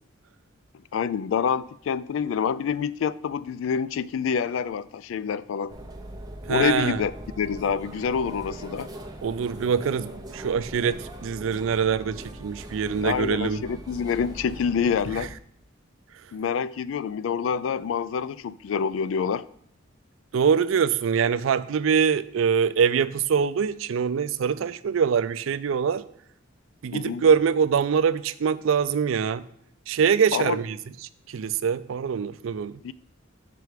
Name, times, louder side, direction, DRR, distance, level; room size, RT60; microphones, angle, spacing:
voice 1, 0.9-5.7 6.5-8.9 13.0-15.3 16.3-19.5 26.9-27.3 30.3-30.6 32.8-32.9, left 7 dB, 80° left, 0.3 m, -27 dB
sound 1, 5.7-15.3, right 1 dB, 20° right, 0.7 m, -41 dB
voice 2, 6.5-7.0 9.2-13.6 20.3-26.0 26.8-29.4 29.9-30.8 31.3-32.7, right 6 dB, 80° right, 0.4 m, -24 dB
6.8 x 4.9 x 4.7 m
head